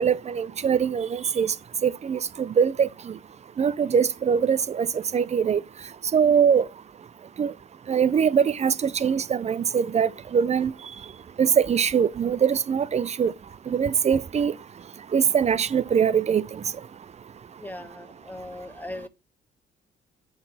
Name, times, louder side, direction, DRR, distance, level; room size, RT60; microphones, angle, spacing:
voice 1, 0.0-1.5 1.8-3.2 3.6-5.6 6.1-6.7 7.4-7.5 7.9-10.7 11.4-13.3 13.7-14.5 15.1-16.6, right 7 dB, 35° right, 0.5 m, -22 dB
voice 2, 17.6-19.1, left 1 dB, 10° left, 1.0 m, -38 dB
8.7 x 3.9 x 4.1 m
cardioid pair, 90°, 20 cm